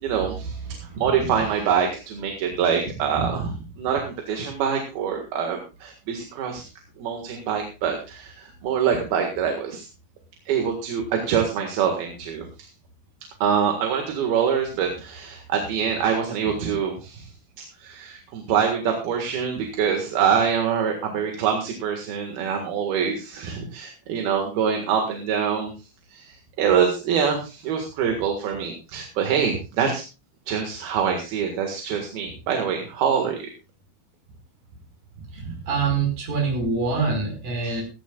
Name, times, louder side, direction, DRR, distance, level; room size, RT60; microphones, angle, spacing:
voice 1, 0.0-0.6 1.0-6.7 7.0-9.9 10.5-12.7 13.4-17.3 17.8-25.7 26.1-30.0 30.5-33.5 35.4-35.5 37.6-37.8, right 7 dB, 80° right, 3 dB, 3.7 m, -25 dB
voice 2, 35.3-37.8, right 4 dB, 55° right, 0 dB, 6.7 m, -25 dB
17.0 x 16.0 x 2.4 m, 0.31 s
omnidirectional pair, 4.3 m